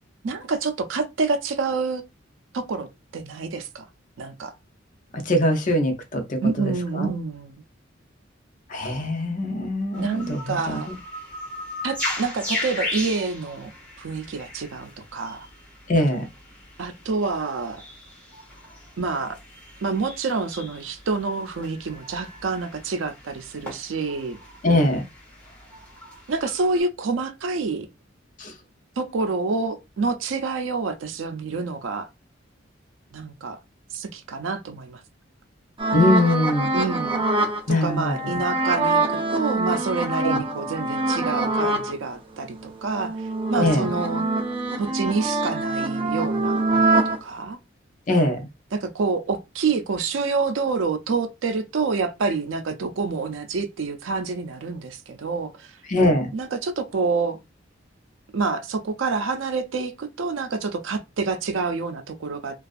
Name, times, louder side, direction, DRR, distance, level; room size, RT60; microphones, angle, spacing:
voice 1, 0.2-2.0 2.5-2.9 3.1-3.9 4.2-4.5 6.4-7.6 10.0-10.9 11.8-13.7 14.0-15.5 16.8-17.8 19.0-19.4 19.8-24.4 26.3-27.9 29.0-32.1 33.1-33.6 33.9-35.0 36.7-37.2 37.7-43.2 43.5-44.3 44.8-47.6 48.7-55.8 56.3-57.4 58.3-62.6, right 4 dB, 85° right, 0.4 m, -27 dB
voice 2, 5.3-7.1 8.7-10.8 15.9-16.2 24.6-25.0 28.4-28.5 35.9-36.7 37.7-38.2 40.2-40.4 43.6-43.8 48.1-48.5 55.9-56.3, left 1 dB, 45° left, 0.6 m, -22 dB
sound 1, 9.9-26.8, left 1 dB, 5° left, 1.0 m, -37 dB
sound 2, 35.8-41.9 42.4-47.2, right 2 dB, 30° right, 0.5 m, -24 dB
2.5 x 2.3 x 2.4 m
head